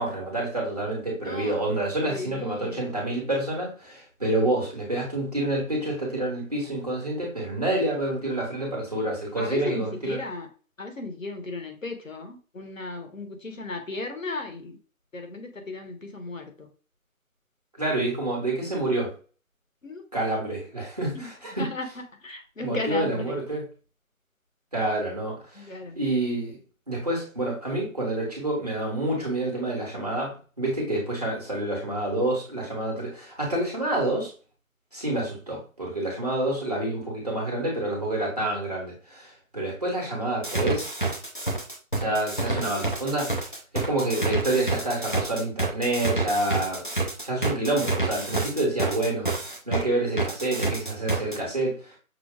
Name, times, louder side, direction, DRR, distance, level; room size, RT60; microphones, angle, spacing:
voice 1, 0.0-10.2 17.8-19.1 20.1-21.7 22.6-23.7 24.7-26.6 26.9-34.3 34.9-40.9 42.0-46.8 47.2-52.0, right 1 dB, 30° right, -3 dB, 1.2 m, -28 dB
voice 2, 1.2-1.7 2.0-2.8 9.4-10.5 10.8-14.8 15.1-16.7 19.8-20.0 21.1-21.3 21.6-21.8 22.2-23.4 25.6-25.9, left 3 dB, 65° left, 5 dB, 1.2 m, -35 dB
sound 1, 40.4-49.8 50.2-51.4, right 2 dB, 35° left, 0.6 m, -28 dB
6.1 x 2.1 x 3.5 m, 0.37 s
figure-of-eight pair, 175°, 43 cm